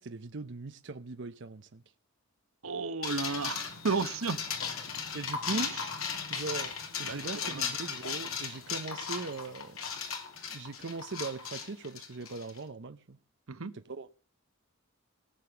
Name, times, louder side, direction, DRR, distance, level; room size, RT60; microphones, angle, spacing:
voice 1, 0.0-1.8 5.1-5.8 6.3-9.8 10.0-10.2 10.5-13.2 13.7-14.1, right 3 dB, 60° right, 0.7 m, -40 dB
voice 2, 2.6-4.4 5.5-5.6 7.0-7.7 13.5-13.7, right 4 dB, 90° right, 1.0 m, -33 dB
sound 1, 3.0-12.6, left 6 dB, 90° left, 3.0 m, -37 dB
17.5 x 6.8 x 7.0 m
head